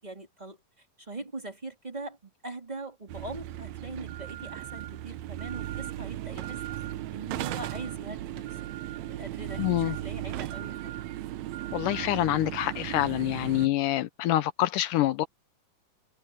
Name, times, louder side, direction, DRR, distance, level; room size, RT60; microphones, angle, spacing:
voice 1, 0.0-6.7 7.1-8.5 9.1-10.9, right 2 dB, 15° right, 2.5 m, -41 dB
sound 1, 3.1-13.7, right 14 dB, 75° right, 1.6 m, -36 dB
voice 2, 9.6-10.0 11.7-15.3, left 14 dB, 75° left, 2.2 m, -26 dB
omnidirectional pair, 3.9 m